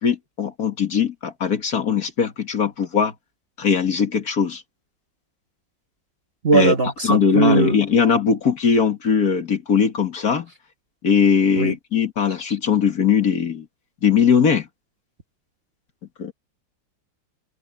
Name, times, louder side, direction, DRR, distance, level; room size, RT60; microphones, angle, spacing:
voice 1, 0.0-3.1 3.6-4.6 6.5-6.7 7.1-10.5 11.0-13.7 14.0-14.7 16.2-16.3, left 6 dB, 50° left, 2.2 m, -20 dB
voice 2, 6.4-7.8 11.6-11.7, right 4 dB, 35° right, 1.4 m, -19 dB
omnidirectional pair, 2.0 m